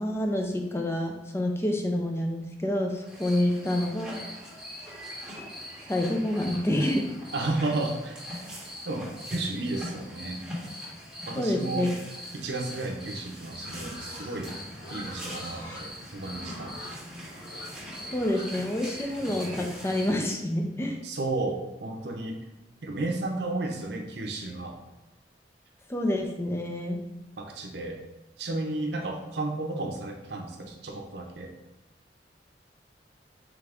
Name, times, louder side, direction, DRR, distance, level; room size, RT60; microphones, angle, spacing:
voice 1, 0.0-4.2 5.9-7.0 11.4-11.9 18.1-21.0 25.9-27.0, left 1 dB, 15° left, 2 dB, 0.4 m, -28 dB
sound 1, 3.1-20.1, equal, 5° right, 0.9 m, -41 dB
voice 2, 7.3-8.2 8.8-10.4 11.3-11.9 12.3-14.6 14.9-16.9 21.0-22.5 22.8-24.8 27.4-28.0 28.4-31.6, right 2 dB, 75° right, 3 dB, 0.6 m, -33 dB
Livestock farm animals working animals, 13.6-19.6, left 1 dB, 80° left, 1.5 m, -45 dB
3.7 x 3.4 x 3.4 m, 1.0 s
head